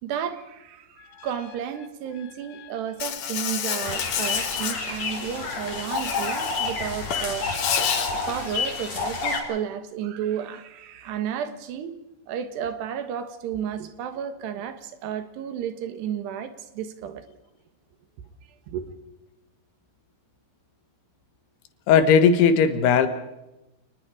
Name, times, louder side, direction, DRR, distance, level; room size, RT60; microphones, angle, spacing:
voice 1, 0.0-17.4 18.7-18.8, right 9 dB, 90° right, 3.6 m, -32 dB
Insect, 3.0-4.8 5.9-6.7 7.0-8.1, left 9 dB, 60° left, 2.0 m, -29 dB
sound 1, 3.8-9.4, left 4 dB, 40° left, 4.3 m, -29 dB
voice 2, 21.9-23.1, left 6 dB, 80° left, 3.5 m, -17 dB
28.0 x 20.0 x 5.0 m
omnidirectional pair, 4.6 m